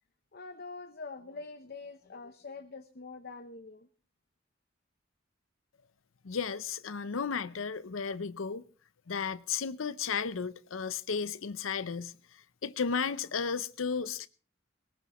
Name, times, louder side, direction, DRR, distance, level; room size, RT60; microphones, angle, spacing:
voice 1, 0.3-3.9, left 4 dB, 50° left, 0.8 m, -45 dB
voice 2, 6.2-8.6 9.1-12.1 12.6-14.3, left 6 dB, 90° left, 0.7 m, -34 dB
19.5 x 18.5 x 3.0 m
head